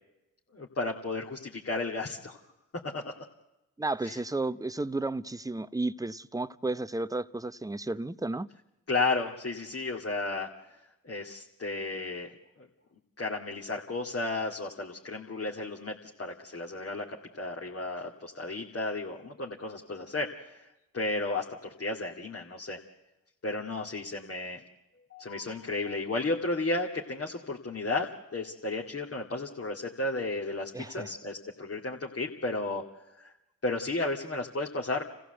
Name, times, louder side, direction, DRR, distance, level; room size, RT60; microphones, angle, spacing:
voice 1, 0.5-2.4 2.9-3.1 4.0-4.2 8.9-10.5 11.0-12.3 12.6-12.7 13.2-20.5 20.9-22.8 23.4-24.6 25.1-32.8 33.6-35.0, left 2 dB, 35° left, 2.4 m, -33 dB
voice 2, 3.8-8.5 30.7-31.1, right 2 dB, 10° right, 0.7 m, -33 dB
27.5 x 15.5 x 8.0 m
hypercardioid pair, 50°, 38 cm